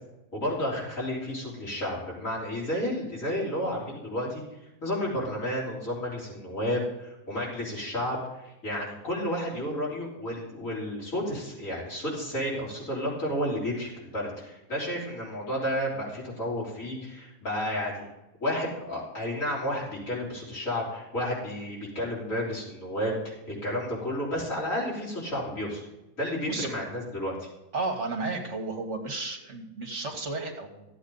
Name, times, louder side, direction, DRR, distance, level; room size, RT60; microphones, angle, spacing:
voice 1, 0.3-4.4 4.8-8.2 8.6-18.0 18.4-25.8 26.2-27.5, equal, 75° left, -6 dB, 4.5 m, -31 dB
voice 2, 27.7-30.9, right 3 dB, 60° right, 2 dB, 1.9 m, -33 dB
14.0 x 8.3 x 3.9 m, 0.95 s
omnidirectional pair, 1.4 m